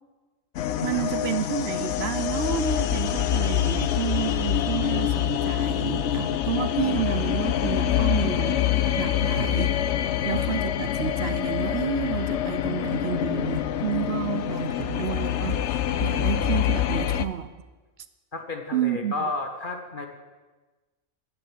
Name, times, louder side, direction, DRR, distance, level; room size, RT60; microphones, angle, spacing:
sound 1, 0.6-17.3, left 11 dB, 65° left, 0.9 m, -25 dB
voice 1, 0.8-8.6 9.0-9.7 10.2-17.5 18.7-19.1, right 10 dB, 60° right, 12 dB, 0.8 m, -30 dB
voice 2, 18.3-20.1, left 3 dB, 40° left, 4 dB, 1.4 m, -32 dB
10.5 x 9.1 x 7.5 m, 1.3 s
omnidirectional pair, 1.3 m